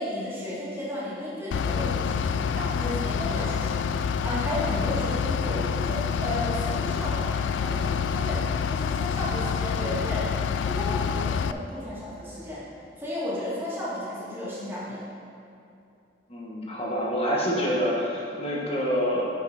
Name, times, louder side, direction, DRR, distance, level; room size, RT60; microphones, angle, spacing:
voice 1, 0.0-10.4 10.7-15.1, left 1 dB, 15° right, -8 dB, 2.1 m, -34 dB
Bus / Idling, 1.5-11.5, left 6 dB, 85° left, 0.3 m, -27 dB
voice 2, 16.3-19.3, equal, 35° left, -4 dB, 1.5 m, -27 dB
9.1 x 5.7 x 4.3 m, 2.5 s
head